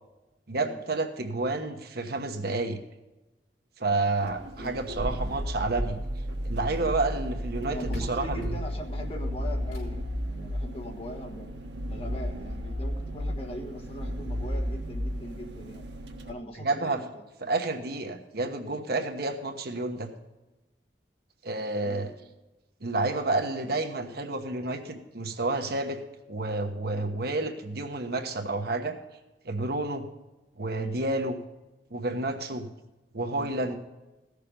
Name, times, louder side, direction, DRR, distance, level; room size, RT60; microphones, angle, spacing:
voice 1, 0.5-2.8 3.8-6.0 6.4-8.5 16.6-17.0 17.4-20.1 21.4-22.1 22.8-26.0 26.3-29.0 29.4-30.1 30.6-31.4 31.9-32.7 33.1-33.8, right 2 dB, 60° right, 5 dB, 1.2 m, -30 dB
sound 1, 4.2-16.3, equal, 80° right, 1.3 m, -33 dB
voice 2, 4.6-5.1 7.7-11.5 11.9-15.8 16.3-17.2 19.9-20.1 21.8-22.1 30.8-31.0 32.5-32.6 33.3-33.6, left 1 dB, 35° left, 1 dB, 1.5 m, -41 dB
sound 2, 5.5-6.7 7.5-7.6 7.9-10.2 11.5-11.6 12.1-12.2 12.5-12.6 13.1-13.3, left 1 dB, 80° left, 3.8 m, -47 dB
16.0 x 6.7 x 5.1 m, 1.1 s
head